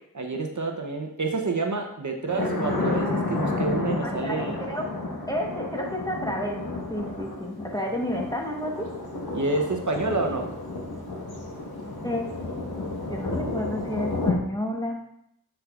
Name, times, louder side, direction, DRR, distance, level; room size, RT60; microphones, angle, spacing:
voice 1, 0.1-4.6 9.3-10.5, right 3 dB, 55° right, 3 dB, 0.8 m, -28 dB
Thunder, 2.3-14.3, left 2 dB, 85° left, 1.4 m, -31 dB
voice 2, 4.0-4.8 5.3-6.6 6.9-8.8 12.0-12.3 13.1-15.0, equal, 10° left, 0 dB, 1.1 m, -31 dB
7.2 x 6.5 x 2.4 m, 0.75 s
wide cardioid pair, 60°, 36 cm